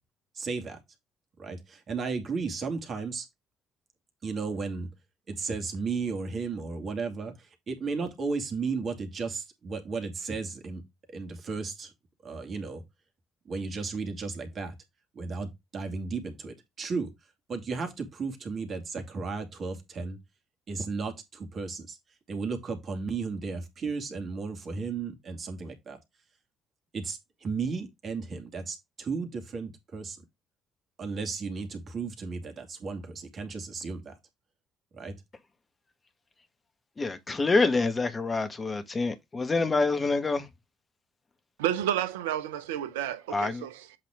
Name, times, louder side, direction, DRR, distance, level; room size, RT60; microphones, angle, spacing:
voice 1, 0.3-0.8 1.4-3.3 4.2-4.9 5.3-10.8 11.1-11.9 12.2-12.8 13.5-14.8 15.1-17.1 17.5-20.2 20.7-22.0 22.3-26.0 26.9-30.2 31.0-34.2 34.9-35.1, right 4 dB, 50° right, 2.2 m, -34 dB
voice 2, 37.0-40.4 43.3-43.6, left 3 dB, 35° left, 1.7 m, -26 dB
voice 3, 41.6-44.0, right 11 dB, 80° right, 0.8 m, -31 dB
7.9 x 4.2 x 3.7 m
hypercardioid pair, 50°, 0 cm